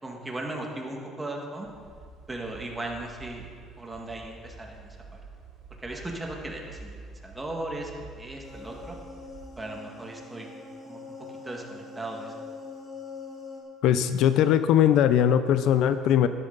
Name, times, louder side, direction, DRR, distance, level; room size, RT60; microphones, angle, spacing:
voice 1, 0.0-1.7 2.3-3.5 3.8-5.2 5.8-6.9 7.2-9.0 9.6-10.5 10.8-12.3, right 2 dB, 15° right, 0 dB, 1.8 m, -37 dB
sound 1, 1.6-9.5, right 3 dB, 65° right, 2.6 m, -47 dB
sound 2, 8.4-13.6, left 4 dB, 20° left, 2.7 m, -43 dB
voice 2, 13.8-16.3, left 10 dB, 70° left, 11 dB, 0.5 m, -20 dB
12.0 x 11.0 x 4.0 m, 2.2 s
cardioid pair, 115°, 0 cm